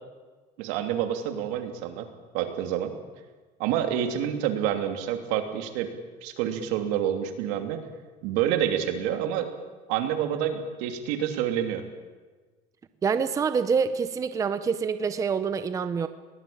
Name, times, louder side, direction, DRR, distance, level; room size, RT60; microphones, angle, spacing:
voice 1, 0.6-2.1 2.3-2.9 3.6-5.9 6.2-7.8 8.2-9.5 9.9-11.8, right 10 dB, 80° right, 6 dB, 3.0 m, -28 dB
voice 2, 13.0-16.1, right 6 dB, 20° right, 11 dB, 0.7 m, -26 dB
22.5 x 19.0 x 8.8 m, 1.3 s
cardioid pair, 160°, 18 cm